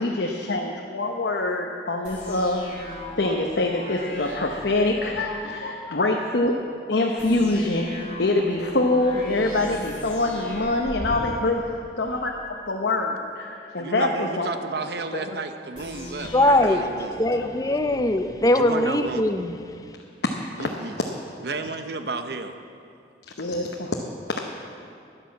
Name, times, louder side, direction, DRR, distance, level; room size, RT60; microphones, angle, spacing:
voice 1, 0.0-2.6 3.2-6.5 6.9-12.4 12.7-14.5 20.6-20.7 23.4-24.0, left 2 dB, 70° left, 0.9 m, -24 dB
sound 1, 2.0-5.3 7.2-12.4 15.7-18.4, equal, 40° left, 2.5 m, -39 dB
voice 2, 13.8-16.3 16.6-17.2 18.6-19.2 20.6-20.9 21.4-22.5, right 3 dB, 60° right, 0.8 m, -32 dB
voice 3, 16.3-16.9 17.2-19.6, left 1 dB, 20° left, 0.5 m, -21 dB
11.0 x 10.5 x 7.3 m
head